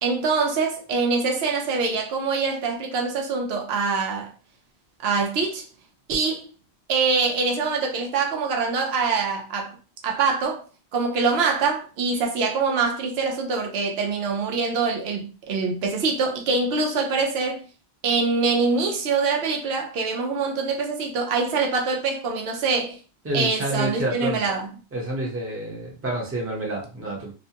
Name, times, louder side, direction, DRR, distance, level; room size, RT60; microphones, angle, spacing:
voice 1, 0.0-4.3 5.0-5.6 6.1-6.5 6.9-9.8 10.0-10.6 10.9-17.7 18.0-23.0 23.3-24.7, right 4 dB, 75° right, 0.9 m, -24 dB
voice 2, 23.2-24.5 24.9-27.3, right 1 dB, 15° right, 0.6 m, -28 dB
2.5 x 2.1 x 2.8 m
omnidirectional pair, 1.1 m